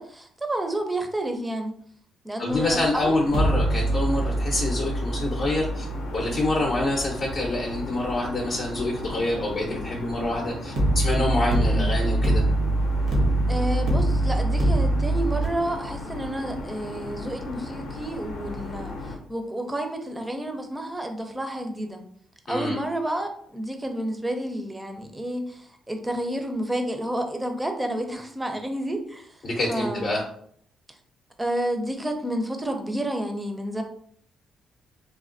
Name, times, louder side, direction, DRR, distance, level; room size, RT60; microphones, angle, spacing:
voice 1, 0.0-1.7 2.2-3.3 11.6-11.9 13.5-22.0 22.5-29.4 29.7-30.2 31.4-33.8, right 1 dB, 15° right, 5 dB, 0.5 m, -30 dB
voice 2, 2.4-5.9 6.1-12.4 22.5-22.8 29.4-30.2, left 2 dB, 50° left, -2 dB, 0.6 m, -26 dB
sound 1, 2.5-19.2, left 2 dB, 90° left, 0.6 m, -36 dB
sound 2, 3.3-8.4 10.8-15.5, right 1 dB, 85° right, 0.8 m, -24 dB
3.2 x 2.1 x 2.5 m, 0.63 s
cardioid pair, 90°, 0 cm